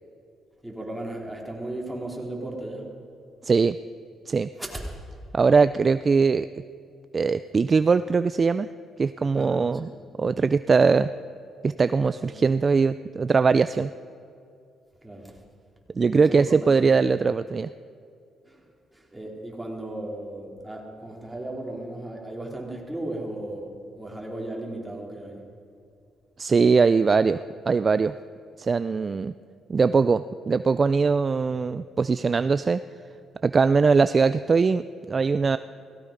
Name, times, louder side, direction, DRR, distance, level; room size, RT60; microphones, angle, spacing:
voice 1, 0.6-2.9 4.5-4.8 9.3-9.9 12.0-12.3 15.0-15.4 16.1-16.8 18.4-18.6 18.9-25.4, right 1 dB, 5° right, -2 dB, 3.4 m, -36 dB
voice 2, 3.4-3.8 4.3-4.5 5.3-6.5 7.1-8.7 9.0-9.9 10.2-11.1 11.6-13.9 16.0-17.7 26.4-28.1 28.6-29.3 29.7-32.8 33.4-35.6, right 4 dB, 35° right, 13 dB, 0.3 m, -21 dB
17.5 x 16.5 x 5.1 m, 2.4 s
cardioid pair, 90°, 0 cm